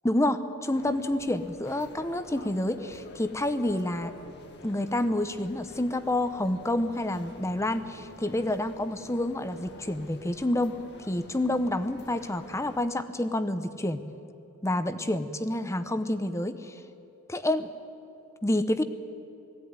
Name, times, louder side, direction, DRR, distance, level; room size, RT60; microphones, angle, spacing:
voice 1, 0.0-4.1 4.6-10.8 11.1-14.0 14.6-16.8 17.3-17.7 18.4-18.8, left 1 dB, 15° left, 11 dB, 0.8 m, -28 dB
sound 1, 0.7-12.8, left 1 dB, 50° left, 1.6 m, -49 dB
19.5 x 16.0 x 9.6 m, 3.0 s
head